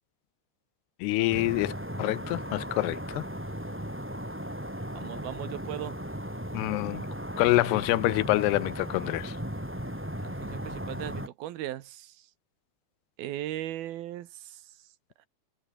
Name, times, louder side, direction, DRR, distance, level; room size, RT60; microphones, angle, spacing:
voice 1, 1.0-3.3 6.5-7.1 7.4-9.4, left 19 dB, 85° left, 2.8 m, -26 dB
sound 1, 1.3-11.3, equal, 5° right, 4.6 m, -36 dB
voice 2, 4.9-6.0 10.2-12.3 13.2-14.7, right 13 dB, 70° right, 2.9 m, -38 dB
omnidirectional pair, 4.7 m